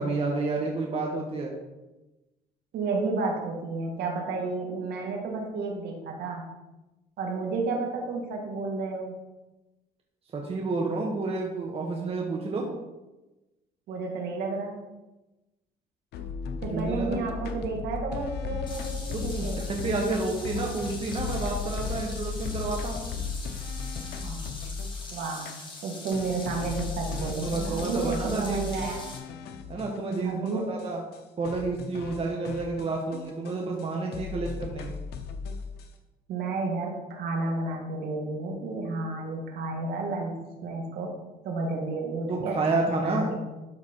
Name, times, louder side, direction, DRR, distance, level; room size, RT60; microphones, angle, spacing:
voice 1, 0.0-1.5 10.3-12.7 16.7-17.2 19.1-23.0 27.1-28.9 29.7-31.0 31.4-35.0 42.3-43.3, right 3 dB, 35° right, 0 dB, 1.2 m, -30 dB
voice 2, 2.7-6.5 7.2-9.2 13.9-14.9 16.6-19.6 20.0-20.2 20.6-20.7 24.2-24.5 25.1-25.5 25.8-29.0 30.2-30.8 33.5-33.6 36.3-41.1 41.4-43.4, right 3 dB, 70° right, 1 dB, 2.1 m, -32 dB
sound 1, 16.1-25.0 25.5-25.6 26.1-30.5 30.8-30.9 31.1-31.2 31.4-33.9 34.1-35.9, left 5 dB, 75° left, 1.0 m, -36 dB
Small stream, 18.7-29.2, left 2 dB, 30° left, 2.1 m, -43 dB
12.0 x 4.2 x 4.4 m, 1.1 s
cardioid pair, 110°, 17 cm